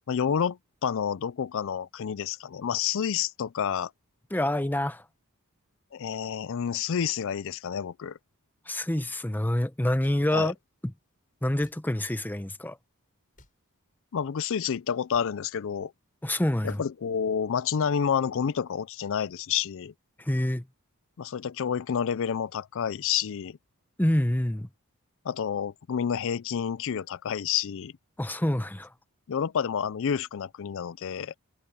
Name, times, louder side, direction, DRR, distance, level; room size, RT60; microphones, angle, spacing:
voice 1, 0.1-3.9 5.9-8.2 10.3-10.5 14.1-15.9 16.6-19.9 21.2-23.6 25.2-27.9 29.3-31.4, left 7 dB, 60° left, 0.4 m, -29 dB
voice 2, 4.3-5.0 8.7-10.5 10.8-10.9 11.4-12.8 16.2-16.8 20.2-20.7 24.0-24.7 28.2-28.9, left 1 dB, 10° left, 0.8 m, -27 dB
sound 1, 10.0-10.2 11.6-11.8 13.3-13.6 15.1-15.3 16.7-16.9, left 2 dB, 40° left, 6.4 m, -56 dB
head